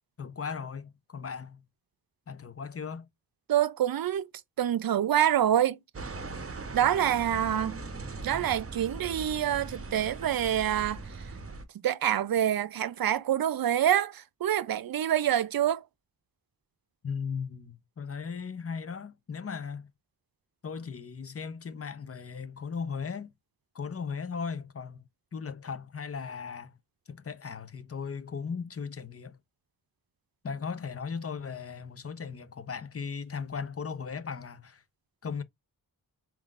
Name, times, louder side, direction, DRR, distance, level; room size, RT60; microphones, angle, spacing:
voice 1, 0.2-1.6 2.3-3.1 17.0-19.9 20.6-23.3 23.7-26.7 27.1-29.4 30.4-34.8 35.2-35.4, left 6 dB, 35° left, 0.7 m, -37 dB
voice 2, 3.5-4.3 4.6-5.8 6.7-7.8 8.2-11.0 11.8-15.8, right 10 dB, 65° right, 0.6 m, -26 dB
sound 1, 5.9-11.6, right 3 dB, 35° right, 0.9 m, -40 dB
4.6 x 3.7 x 2.4 m
wide cardioid pair, 95°, 38 cm